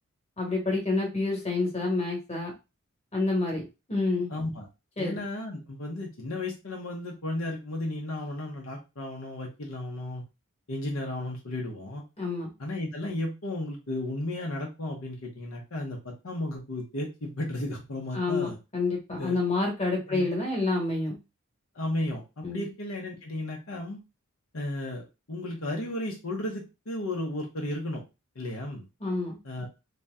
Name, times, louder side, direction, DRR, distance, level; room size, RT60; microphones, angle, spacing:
voice 1, 0.4-2.5 3.1-4.3 5.0-5.2 12.2-12.5 18.1-21.2 22.4-22.6 29.0-29.4, left 3 dB, 30° left, -1 dB, 1.4 m, -28 dB
voice 2, 4.3-4.7 5.0-10.2 10.7-12.0 12.6-18.6 19.2-19.4 20.1-20.3 21.7-24.0 24.5-28.0 28.3-28.8 29.4-29.7, left 1 dB, 75° left, -1 dB, 1.0 m, -34 dB
3.0 x 2.8 x 3.6 m, 0.26 s
head